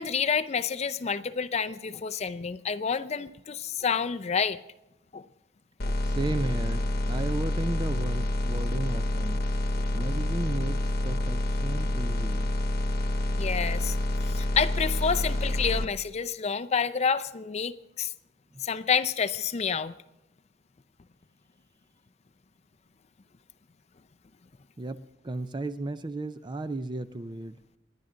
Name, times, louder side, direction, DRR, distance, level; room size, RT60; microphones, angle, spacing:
voice 1, 0.0-4.6 5.1-5.2 5.8-5.9 13.3-14.0 14.2-18.1 18.6-19.9, left 6 dB, 30° left, 11 dB, 0.4 m, -29 dB
sound 1, 5.8-15.8, left 1 dB, 50° left, 1.0 m, -28 dB
voice 2, 6.0-9.4 9.9-12.5 18.5-18.6 24.8-27.6, right 2 dB, 25° right, 12 dB, 0.4 m, -34 dB
28.5 x 10.5 x 3.8 m, 0.90 s
head